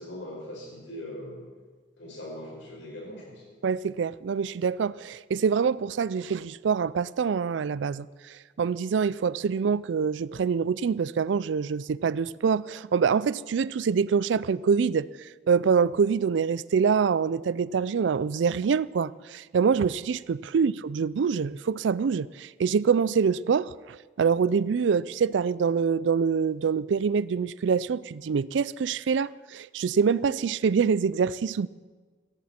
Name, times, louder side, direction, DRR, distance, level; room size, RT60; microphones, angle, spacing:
voice 1, 0.0-1.4 2.0-3.5 20.5-20.7, left 1 dB, 90° left, 5.4 m, -40 dB
voice 2, 3.6-31.7, right 6 dB, 80° right, 0.4 m, -25 dB
17.5 x 14.5 x 4.4 m
head